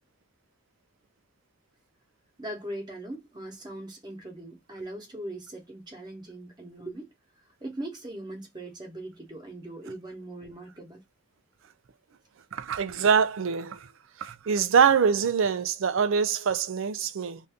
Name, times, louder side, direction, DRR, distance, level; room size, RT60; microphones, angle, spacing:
voice 1, 2.4-7.1 7.6-11.0, right 1 dB, 20° right, 1.0 m, -40 dB
voice 2, 12.5-13.9 14.2-17.4, right 6 dB, 65° right, 0.4 m, -24 dB
2.6 x 2.6 x 3.4 m
head